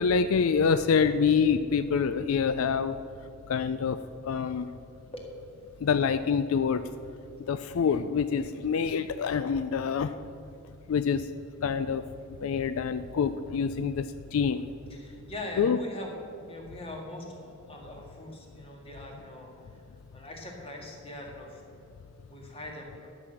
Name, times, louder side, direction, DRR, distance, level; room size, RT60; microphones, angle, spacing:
voice 1, 0.0-3.0 3.5-4.0 4.3-4.7 5.8-6.8 7.5-10.1 10.9-11.3 11.6-12.0 12.4-14.6 15.6-15.8, left 6 dB, 80° left, 11 dB, 0.4 m, -26 dB
voice 2, 14.9-16.1 16.4-19.5 20.1-21.9 22.3-23.1, left 1 dB, 30° left, 0 dB, 1.9 m, -42 dB
11.5 x 6.2 x 7.7 m, 2.7 s
head